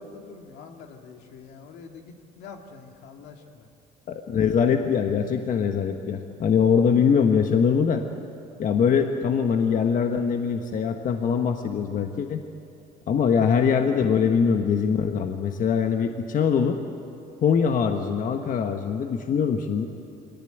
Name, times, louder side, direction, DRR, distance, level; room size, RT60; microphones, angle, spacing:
voice 1, 0.0-3.7, left 5 dB, 80° left, 3 dB, 2.5 m, -45 dB
voice 2, 4.1-8.0 8.6-12.4 13.1-16.8 17.4-19.9, left 6 dB, 50° left, 5 dB, 1.4 m, -22 dB
24.0 x 19.0 x 9.1 m, 2.8 s
cardioid pair, 110°, 17 cm